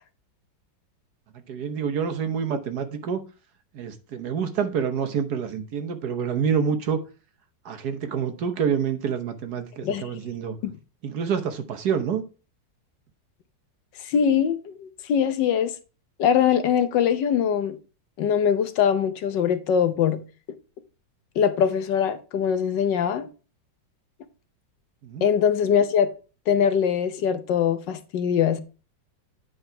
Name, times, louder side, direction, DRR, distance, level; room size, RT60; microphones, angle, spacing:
voice 1, 1.5-3.2 3.7-7.0 7.6-10.6 11.0-12.2 25.0-25.3, right 7 dB, 65° right, 1.4 m, -27 dB
voice 2, 14.0-15.7 16.2-17.8 18.2-20.2 21.4-23.3 25.2-26.1 26.5-28.6, left 8 dB, 75° left, 1.5 m, -22 dB
9.3 x 5.0 x 4.5 m
omnidirectional pair, 2.0 m